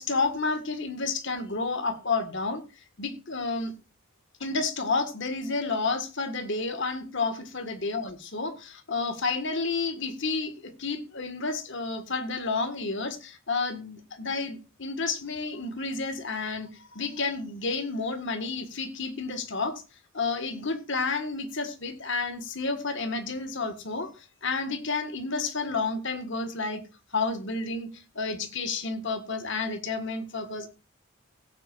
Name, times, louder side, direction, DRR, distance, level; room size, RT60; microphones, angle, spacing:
voice 1, 0.0-2.6 3.0-3.7 4.4-19.8 20.1-26.8 27.1-30.7, left 3 dB, 55° left, 1.7 m, -30 dB
17.5 x 9.1 x 2.5 m
head